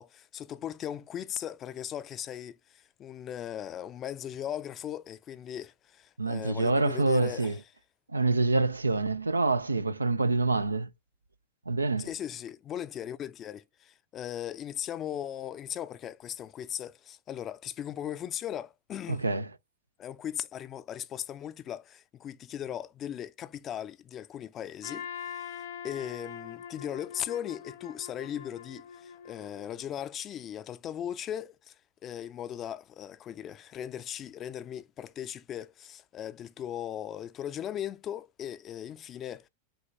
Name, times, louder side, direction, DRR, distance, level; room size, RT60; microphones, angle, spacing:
voice 1, 0.0-7.6 12.0-19.2 20.0-31.7 32.0-39.5, left 10 dB, 30° left, 0.5 m, -38 dB
voice 2, 6.2-7.6 8.1-10.9 11.7-12.1 19.1-19.5, right 3 dB, 80° right, 0.4 m, -26 dB
Trumpet, 24.8-29.9, left 8 dB, 60° left, 0.9 m, -43 dB
5.4 x 3.0 x 3.3 m
figure-of-eight pair, 90°, 0 cm